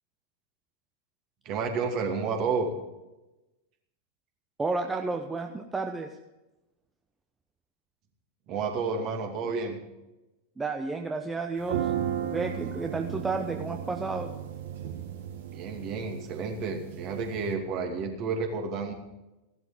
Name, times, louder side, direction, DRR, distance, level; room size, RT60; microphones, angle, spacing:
voice 1, 1.4-2.7 8.5-9.8 15.5-18.9, right 4 dB, 40° right, 3 dB, 2.5 m, -31 dB
voice 2, 4.6-6.1 10.6-11.9 12.2-14.3, right 3 dB, 10° right, 5 dB, 0.9 m, -31 dB
sound 1, 11.6-17.5, right 9 dB, 55° right, 1.5 m, -35 dB
15.5 x 12.0 x 5.1 m, 1.0 s
figure-of-eight pair, 90°, 0 cm